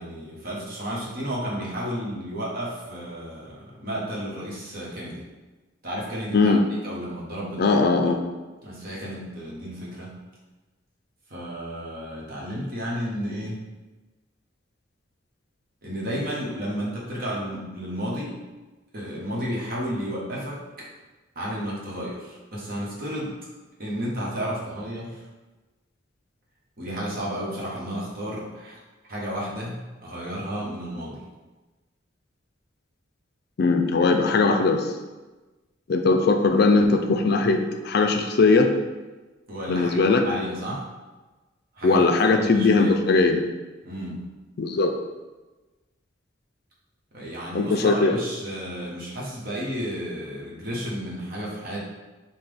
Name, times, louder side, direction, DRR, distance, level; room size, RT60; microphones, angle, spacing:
voice 1, 0.0-5.2 5.8-6.6 6.8-8.2 8.6-10.1 11.3-13.6 15.8-18.4 18.9-20.8 21.3-23.4 23.8-25.2 26.8-28.8 29.1-31.2 39.5-40.0 40.2-40.8 41.7-43.2 43.8-44.2 47.1-51.8, equal, 50° right, -5 dB, 1.1 m, -32 dB
voice 2, 7.6-8.2 33.6-34.8 35.9-38.7 39.7-40.2 41.8-43.4 44.6-44.9 47.5-48.2, left 3 dB, 55° left, 5 dB, 0.4 m, -19 dB
5.7 x 2.2 x 3.4 m, 1.2 s
head